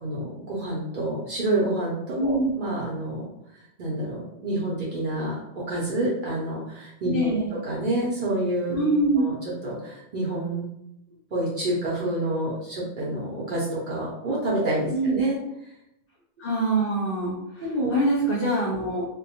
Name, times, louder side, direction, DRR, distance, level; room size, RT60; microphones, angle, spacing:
voice 1, 0.0-3.3 3.8-8.8 9.1-9.4 9.6-10.6 11.3-15.4 17.6-17.9, right 1 dB, 55° right, -7 dB, 0.6 m, -28 dB
voice 2, 2.2-2.6 7.1-7.6 8.7-9.2 14.9-15.2 16.4-17.6 17.9-19.1, right 1 dB, 60° left, -3 dB, 0.6 m, -24 dB
2.2 x 2.1 x 2.7 m, 0.82 s
omnidirectional pair, 1.3 m